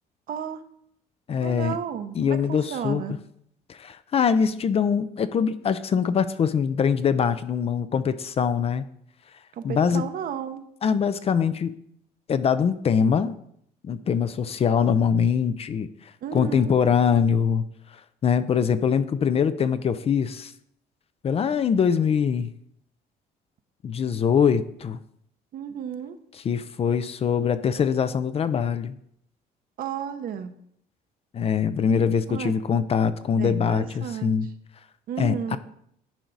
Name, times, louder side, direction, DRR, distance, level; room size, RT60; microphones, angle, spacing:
voice 1, 0.3-0.6 1.4-3.2 9.5-10.6 16.2-16.8 25.5-26.2 29.8-30.5 32.3-32.5 33.3-34.3 35.1-35.6, right 8 dB, 60° right, 9 dB, 0.8 m, -33 dB
voice 2, 1.3-1.8 2.2-3.2 3.7-8.8 9.6-10.1 10.8-11.7 12.3-13.4 13.8-15.9 16.3-17.7 18.2-20.5 21.2-22.5 23.8-25.0 26.4-28.9 31.3-34.5 35.2-35.6, left 7 dB, 35° left, 13 dB, 0.4 m, -23 dB
10.5 x 4.6 x 3.9 m, 0.70 s
cardioid pair, 110°, 17 cm